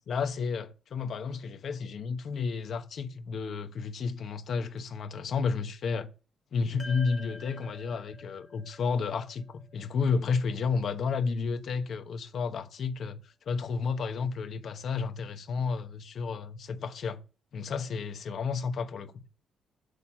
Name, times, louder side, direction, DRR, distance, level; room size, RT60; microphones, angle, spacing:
voice 1, 0.1-6.1 6.5-17.2 17.5-19.1, left 5 dB, 60° left, 1.0 m, -32 dB
sound 1, 6.8-11.3, left 2 dB, 20° left, 1.0 m, -49 dB
6.6 x 4.1 x 6.5 m
supercardioid pair, 70°, 0 cm